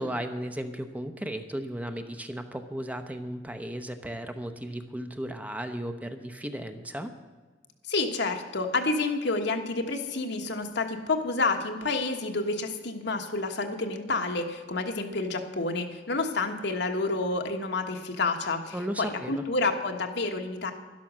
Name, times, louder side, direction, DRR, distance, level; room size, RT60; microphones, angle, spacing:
voice 1, 0.0-7.1 18.7-19.4, right 1 dB, 10° right, 7 dB, 0.7 m, -35 dB
voice 2, 7.9-20.7, left 3 dB, 65° left, 5 dB, 1.3 m, -29 dB
11.5 x 11.5 x 6.2 m, 1.4 s
head